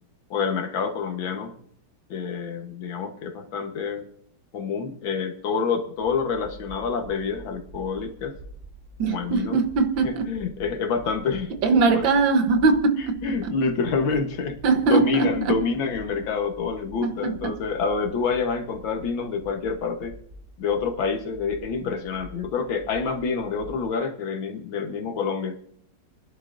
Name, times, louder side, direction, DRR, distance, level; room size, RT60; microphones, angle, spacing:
voice 1, 0.3-1.5 2.1-4.1 4.5-8.4 9.0-9.6 10.0-11.5 13.2-14.6 14.9-20.1 20.6-25.6, left 5 dB, 85° left, 2.0 m, -27 dB
sound 1, 6.0-23.8, right 1 dB, 50° right, 3.6 m, -46 dB
voice 2, 9.0-10.3 11.6-13.6 14.6-15.7 17.0-17.6, right 4 dB, 80° right, 1.8 m, -22 dB
24.5 x 11.0 x 2.6 m
omnidirectional pair, 2.1 m